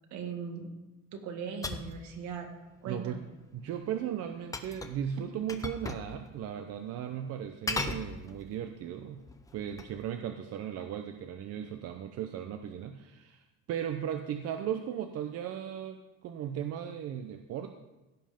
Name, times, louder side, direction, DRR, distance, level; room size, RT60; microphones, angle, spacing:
voice 1, 0.1-0.7 1.1-2.5 2.8-3.2, right 6 dB, 75° right, 4 dB, 1.9 m, -39 dB
sound 1, 1.6-2.0 4.5-5.0 5.5-6.1 6.4-6.5 7.7-8.6 9.2-10.0, left 3 dB, 10° left, 0.7 m, -36 dB
voice 2, 2.9-3.3 3.5-9.2 9.5-17.7, right 9 dB, 55° right, 7 dB, 0.7 m, -37 dB
16.0 x 5.5 x 5.1 m, 1.1 s
cardioid pair, 140°, 29 cm